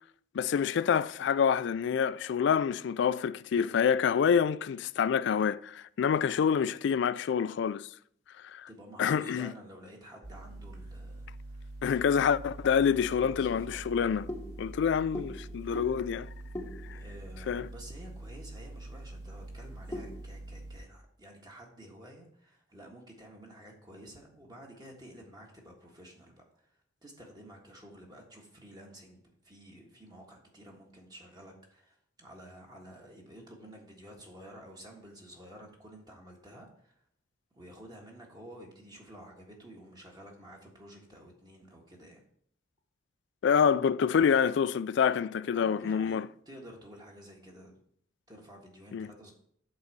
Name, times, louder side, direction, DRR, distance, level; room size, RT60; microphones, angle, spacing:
voice 1, 0.3-7.9 8.5-8.7 9.0-9.5 11.8-14.3 14.6-16.3 16.9-17.0 17.5-17.7 43.4-46.3 48.9-49.1, left 7 dB, 65° left, 0.3 m, -27 dB
voice 2, 8.7-11.7 13.1-13.9 16.9-37.0 37.5-42.2 45.5-47.8 48.3-49.3, equal, 20° right, 1.5 m, -51 dB
sound 1, 10.2-20.8, right 2 dB, 65° right, 2.6 m, -45 dB
sound 2, 12.4-20.3, left 1 dB, 15° left, 0.9 m, -45 dB
8.0 x 3.9 x 6.6 m
head